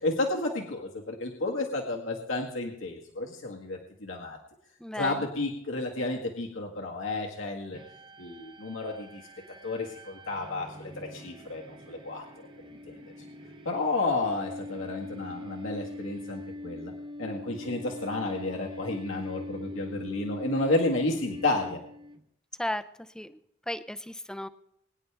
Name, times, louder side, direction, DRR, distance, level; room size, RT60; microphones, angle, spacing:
voice 1, 0.0-4.4 4.9-7.8 8.2-9.2 9.6-12.2 12.9-13.0 13.7-16.9 17.2-21.8, left 2 dB, 80° left, 0 dB, 1.8 m, -31 dB
voice 2, 4.8-5.2 22.6-22.9 23.1-23.4 23.7-24.5, left 1 dB, 5° left, 12 dB, 0.6 m, -34 dB
sound 1, 7.7-22.2, left 1 dB, 25° right, 0.9 m, -42 dB
22.0 x 10.0 x 3.5 m, 0.73 s
head